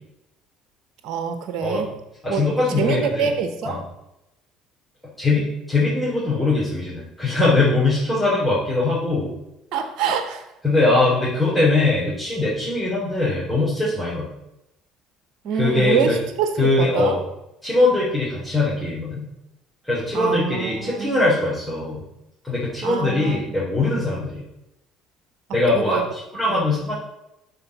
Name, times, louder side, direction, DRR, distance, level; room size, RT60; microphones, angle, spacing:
voice 1, 1.0-1.9 2.3-2.4 2.8-3.8 9.7-10.5 15.4-16.1 16.4-17.2 20.1-21.3 22.8-23.4 25.7-26.0 26.5-26.6, right 7 dB, 60° right, 8 dB, 0.9 m, -25 dB
voice 2, 2.2-3.3 3.6-3.8 5.2-9.3 10.6-14.3 15.6-16.2 16.6-17.2 17.6-19.3 19.9-22.0 22.4-24.4 25.5-26.9, left 2 dB, ahead, -8 dB, 3.3 m, -21 dB
12.5 x 4.2 x 4.1 m, 0.89 s
hypercardioid pair, 60°, 0 cm